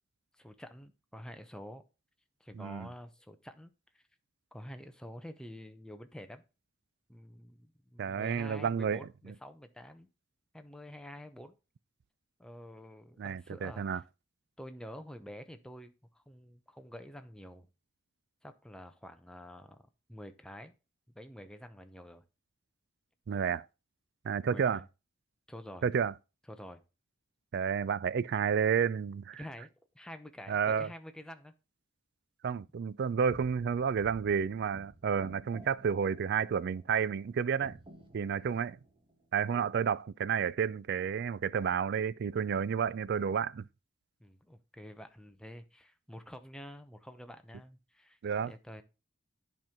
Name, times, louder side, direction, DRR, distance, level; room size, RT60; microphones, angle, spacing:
voice 1, 0.3-1.8 2.4-4.0 4.5-6.4 7.1-10.1 10.5-11.5 12.4-13.9 14.6-17.7 18.4-20.7 21.1-22.2 24.4-24.8 25.5-25.9 26.5-26.8 29.4-29.7 29.9-31.5 44.2-48.8, equal, 5° left, 0.7 m, -48 dB
voice 2, 2.5-2.9 8.0-9.3 13.2-14.0 23.3-23.7 24.2-24.8 25.8-26.1 27.5-29.4 30.5-30.9 32.4-37.8 38.1-38.8 39.3-43.6 48.2-48.5, right 7 dB, 50° right, 0.3 m, -31 dB
sound 1, 33.3-37.3 37.6-39.7, right 1 dB, 25° right, 1.2 m, -54 dB
10.5 x 4.5 x 3.6 m
head